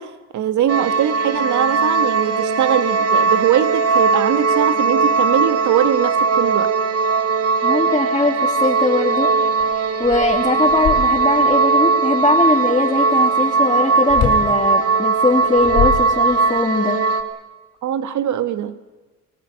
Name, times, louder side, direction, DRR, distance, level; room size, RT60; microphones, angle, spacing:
voice 1, 0.0-6.7 17.8-18.9, right 10 dB, 75° right, 10 dB, 1.9 m, -21 dB
sound 1, 0.7-17.2, right 4 dB, 50° right, 2.6 m, -18 dB
voice 2, 7.6-9.3 10.0-17.0, left 3 dB, 15° left, -2 dB, 3.0 m, -20 dB
sound 2, 9.6-9.7 10.0-11.5 14.1-14.5 15.4-16.6, left 7 dB, 75° left, 5.7 m, -24 dB
29.5 x 18.5 x 6.7 m, 1.2 s
cardioid pair, 90°, 30 cm